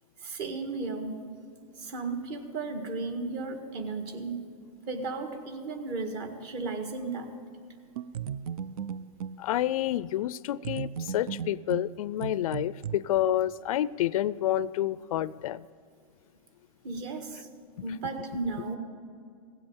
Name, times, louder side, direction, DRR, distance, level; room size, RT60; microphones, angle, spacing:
voice 1, 0.2-1.2 1.8-4.4 4.9-7.4 16.8-17.5 17.8-18.8, right 3 dB, 45° right, 6 dB, 1.8 m, -34 dB
sound 1, 8.0-9.4 10.6-13.0, right 8 dB, 80° right, 0.4 m, -36 dB
voice 2, 9.4-15.7, left 13 dB, 75° left, 20 dB, 0.4 m, -29 dB
16.5 x 7.9 x 7.2 m, 2.3 s
hypercardioid pair, 140°, 18 cm